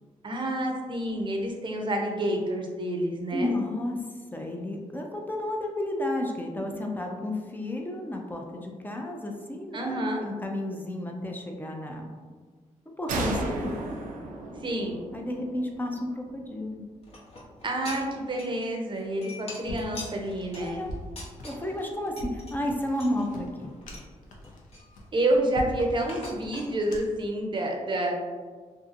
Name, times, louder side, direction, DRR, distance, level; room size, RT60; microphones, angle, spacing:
voice 1, 0.2-3.5 9.7-10.3 14.6-15.0 17.6-20.8 25.1-28.1, right 1 dB, 35° right, 1 dB, 0.6 m, -28 dB
voice 2, 3.3-4.0 4.3-12.1 12.9-13.8 15.1-16.8 20.6-20.9 21.4-23.7, left 1 dB, 15° left, 1 dB, 0.4 m, -32 dB
sound 1, 13.1-16.6, right 3 dB, 85° right, 0.4 m, -34 dB
sound 2, 17.0-18.7 19.0-21.9 22.2-22.5 23.0-24.1 24.4-25.6 26.1-26.7, left 2 dB, 50° left, 0.8 m, -44 dB
sound 3, 19.6-27.3, equal, 80° left, 0.5 m, -42 dB
2.6 x 2.5 x 2.5 m, 1.5 s
cardioid pair, 70°, 13 cm